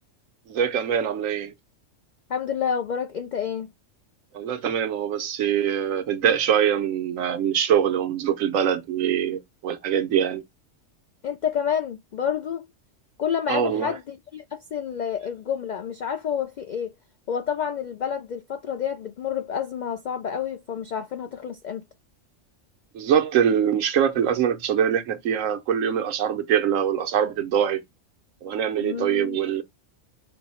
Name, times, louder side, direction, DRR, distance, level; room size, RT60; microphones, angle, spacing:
voice 1, 0.5-1.5 4.3-10.4 13.5-14.0 22.9-27.8 28.4-29.6, right 9 dB, 90° right, 1.1 m, -23 dB
voice 2, 2.3-3.7 11.2-12.6 13.2-16.9 17.3-21.8 28.8-29.4, left 8 dB, 85° left, 0.4 m, -29 dB
5.3 x 2.1 x 4.1 m
omnidirectional pair, 1.3 m